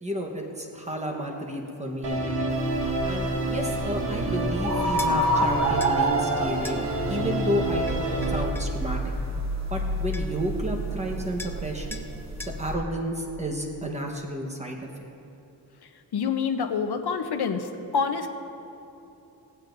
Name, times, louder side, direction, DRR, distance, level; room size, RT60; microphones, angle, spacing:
voice 1, 0.0-2.5 3.0-6.8 7.1-9.0 9.7-12.0 12.6-14.9, equal, 15° right, 1 dB, 1.1 m, -31 dB
Musical instrument, 2.0-8.4, right 1 dB, 75° right, 1.7 m, -28 dB
sound 1, 2.5-12.7, right 1 dB, 40° right, 1.1 m, -29 dB
sound 2, 5.0-5.2 5.8-6.0 6.6-6.8 7.9-8.7 9.8-9.9 10.1-10.5 11.4-11.6 11.9-12.1 12.4-12.6, left 2 dB, 5° left, 0.5 m, -40 dB
voice 2, 16.1-17.7 17.9-18.3, left 6 dB, 70° left, 6 dB, 0.8 m, -26 dB
17.0 x 16.0 x 2.6 m, 2.9 s
wide cardioid pair, 175°, 41 cm